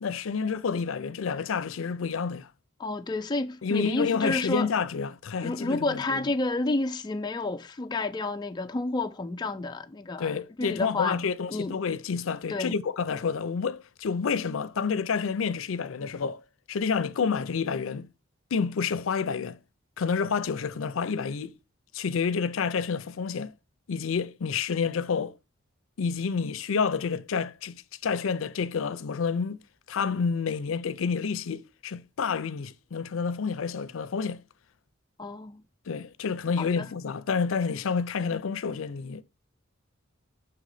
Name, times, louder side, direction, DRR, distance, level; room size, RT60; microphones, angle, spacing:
voice 1, 0.0-2.5 3.6-6.2 10.2-16.4 16.7-18.1 18.5-19.6 20.0-21.5 21.9-23.5 23.9-25.3 26.0-27.8 28.0-29.6 29.9-34.4 35.9-39.2, left 5 dB, 80° left, 0.5 m, -29 dB
voice 2, 2.8-4.7 5.4-11.2 11.5-11.7 12.5-12.7 35.2-35.6 36.6-36.9, left 2 dB, 20° left, 0.3 m, -30 dB
5.9 x 3.9 x 4.8 m
head